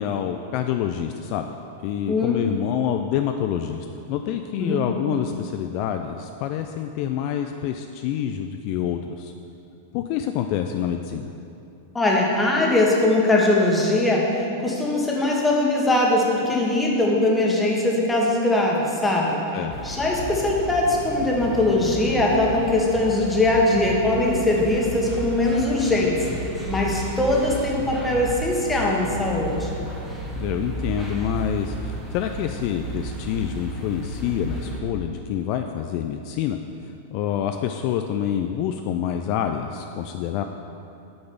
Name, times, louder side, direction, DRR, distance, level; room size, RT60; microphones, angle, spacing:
voice 1, 0.0-1.6 1.8-9.3 9.9-11.3 19.5-19.8 30.4-36.6 37.1-40.4, left 9 dB, 50° left, 6 dB, 0.4 m, -27 dB
voice 2, 2.1-2.4 4.6-4.8 11.9-19.4 19.8-26.2 26.7-29.7, left 2 dB, 10° left, -2 dB, 1.5 m, -21 dB
sound 1, 19.7-34.8, right 1 dB, 5° right, 1.3 m, -33 dB
8.5 x 4.0 x 6.9 m, 2.7 s
hypercardioid pair, 125°, 0 cm